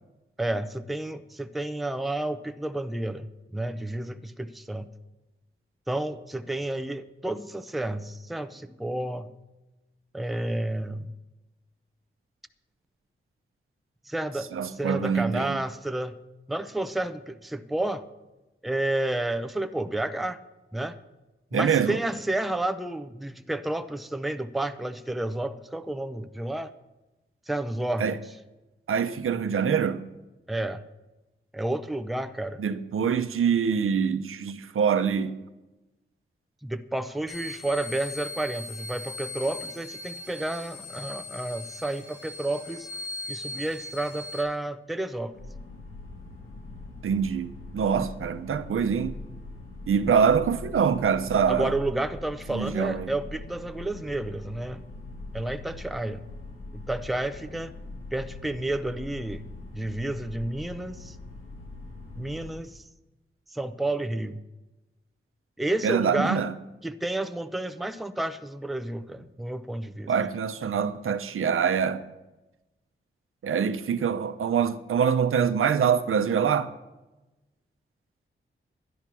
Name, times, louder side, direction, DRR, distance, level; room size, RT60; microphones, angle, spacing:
voice 1, 0.4-4.9 5.9-9.3 10.1-11.1 14.1-16.2 16.5-18.0 18.6-20.4 20.7-21.0 21.5-26.7 27.5-28.2 30.5-30.8 31.5-32.6 36.6-42.9 43.3-45.3 51.5-54.8 55.3-56.2 56.7-57.7 58.1-59.4 59.7-61.2 62.2-62.8 63.5-64.4 65.6-66.4 66.8-70.1, right 1 dB, ahead, 0.5 m, -31 dB
voice 2, 14.5-15.6 21.5-22.0 28.0-28.2 28.9-30.0 32.6-35.3 47.0-49.1 49.9-51.7 52.5-53.1 65.8-66.5 70.1-72.0 73.4-76.7, right 7 dB, 85° right, 0.7 m, -25 dB
sound 1, 37.3-44.4, left 2 dB, 65° left, 4.9 m, -39 dB
sound 2, 45.3-62.6, left 2 dB, 85° left, 5.8 m, -42 dB
12.5 x 10.5 x 6.0 m
wide cardioid pair, 160°, 21 cm